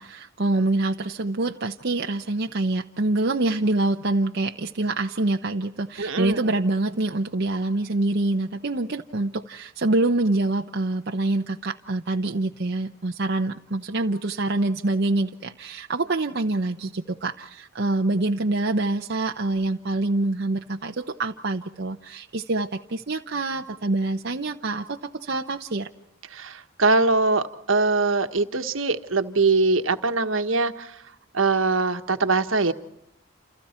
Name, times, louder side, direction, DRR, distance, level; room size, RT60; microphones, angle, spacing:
voice 1, 0.0-25.9, right 2 dB, 55° right, 3 dB, 0.9 m, -26 dB
voice 2, 6.0-6.4 26.3-30.7 31.3-32.7, right 3 dB, 75° right, 8 dB, 1.4 m, -22 dB
29.5 x 29.0 x 4.4 m, 0.75 s
head